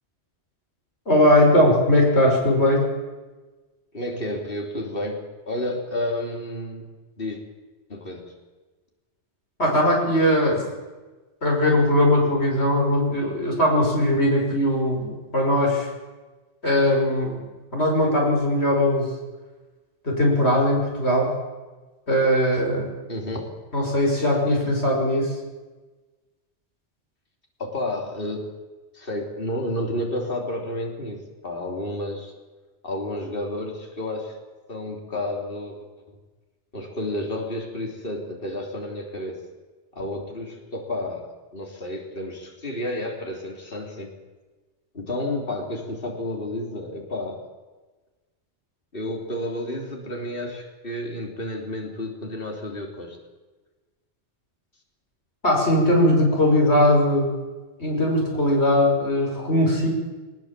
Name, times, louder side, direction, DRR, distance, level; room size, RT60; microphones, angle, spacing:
voice 1, 1.1-2.8 9.6-10.7 11.4-15.9 16.6-17.4 17.7-19.1 20.0-21.3 22.1-22.9 23.7-25.3 55.4-57.3 57.8-59.9, left 1 dB, 65° left, -1 dB, 6.3 m, -20 dB
voice 2, 3.9-5.2 5.5-6.9 7.2-7.4 7.9-8.3 23.1-23.5 27.6-28.5 28.9-32.3 32.8-34.4 34.7-35.8 36.7-39.4 39.9-41.2 41.5-44.1 44.9-47.4 48.9-53.2, left 1 dB, 50° left, 1 dB, 3.6 m, -31 dB
21.0 x 20.5 x 7.6 m, 1.2 s
omnidirectional pair, 1.2 m